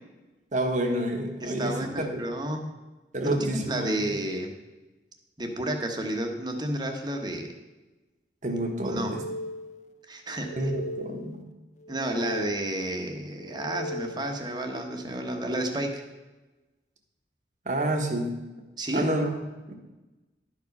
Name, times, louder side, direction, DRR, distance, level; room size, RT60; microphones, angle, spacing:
voice 1, 0.5-1.9 2.1-2.2 3.1-4.1 8.4-9.2 10.6-11.4 17.6-18.7 18.9-19.3 19.7-19.8, right 1 dB, 45° right, 3 dB, 1.2 m, -29 dB
voice 2, 1.4-2.6 3.4-4.5 5.4-7.5 8.8-9.1 10.1-10.7 11.9-16.0 18.8-19.1, right 1 dB, 25° right, 3 dB, 1.0 m, -31 dB
sound 1, 8.8-10.0 10.3-11.5 11.8-13.0 13.4-14.5, equal, 45° left, 0.5 m, -38 dB
11.5 x 4.8 x 5.3 m, 1.1 s
head